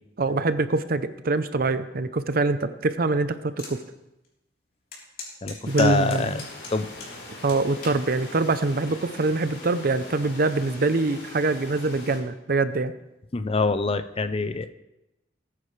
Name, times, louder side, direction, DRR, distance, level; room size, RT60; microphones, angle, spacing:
voice 1, 0.2-3.8 5.7-6.5 7.4-12.9, right 3 dB, 55° right, 12 dB, 0.7 m, -24 dB
sound 1, 3.6-3.8 4.2-4.3 4.9-7.1 7.5-8.0 8.7-9.0, left 4 dB, 55° left, 3.7 m, -38 dB
voice 2, 5.4-6.4 6.7-6.9 13.3-14.7, left 3 dB, 35° left, 11 dB, 0.6 m, -25 dB
sound 2, 5.6-12.2, left 2 dB, 80° left, 4.0 m, -42 dB
19.0 x 9.6 x 3.3 m, 0.92 s
head